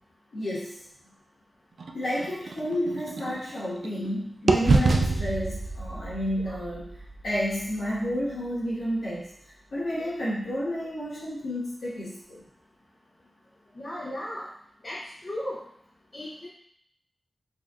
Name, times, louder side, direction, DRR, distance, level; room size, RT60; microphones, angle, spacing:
voice 1, 0.3-0.8 1.9-6.9 7.2-9.3 9.7-12.4, equal, 85° left, -8 dB, 1.3 m, -31 dB
sound 1, 1.8-4.1 4.5-8.4, right 3 dB, 75° right, 0.3 m, -28 dB
voice 2, 13.8-14.5 14.8-15.6 16.1-16.5, left 1 dB, 55° left, -6 dB, 0.8 m, -36 dB
4.2 x 2.6 x 2.4 m, 0.67 s
cardioid pair, 40°, 0 cm